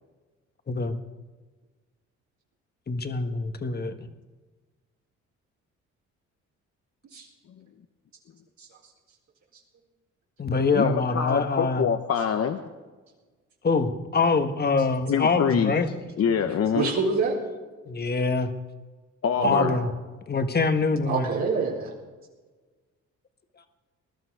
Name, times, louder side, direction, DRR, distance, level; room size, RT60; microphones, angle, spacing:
voice 1, 0.7-1.0 2.9-4.1 10.4-11.8 13.6-15.9 16.1-16.4 17.9-18.5 19.4-19.9 20.3-21.3, left 4 dB, 30° left, 7 dB, 1.5 m, -25 dB
voice 2, 10.7-12.6 15.1-15.7 16.2-16.9 19.2-19.8, left 7 dB, 55° left, 6 dB, 0.9 m, -25 dB
voice 3, 16.7-17.3 19.4-19.9 21.1-21.9, right 4 dB, 65° right, -3 dB, 4.0 m, -26 dB
20.5 x 12.0 x 4.8 m, 1.3 s
cardioid pair, 90°, 30 cm